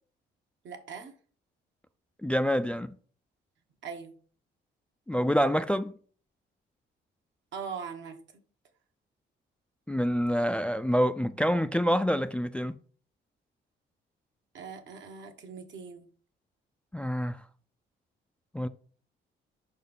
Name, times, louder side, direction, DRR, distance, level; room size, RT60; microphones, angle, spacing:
voice 1, 0.6-1.1 3.8-4.1 7.5-8.2 14.5-16.1, right 6 dB, 65° right, 1.3 m, -40 dB
voice 2, 2.2-2.9 5.1-5.9 9.9-12.7 16.9-17.4 18.5-18.7, equal, 5° left, 0.3 m, -27 dB
5.3 x 4.3 x 5.2 m
cardioid pair, 90°, 20 cm